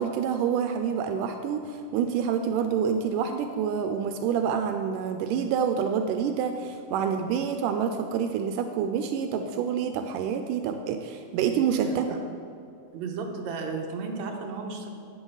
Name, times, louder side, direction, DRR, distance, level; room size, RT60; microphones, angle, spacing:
voice 1, 0.0-12.1, right 7 dB, 85° right, 6 dB, 2.2 m, -27 dB
voice 2, 11.8-12.2 12.9-14.9, right 4 dB, 70° right, 1 dB, 2.2 m, -34 dB
12.0 x 8.9 x 4.0 m, 2.5 s
omnidirectional pair, 3.7 m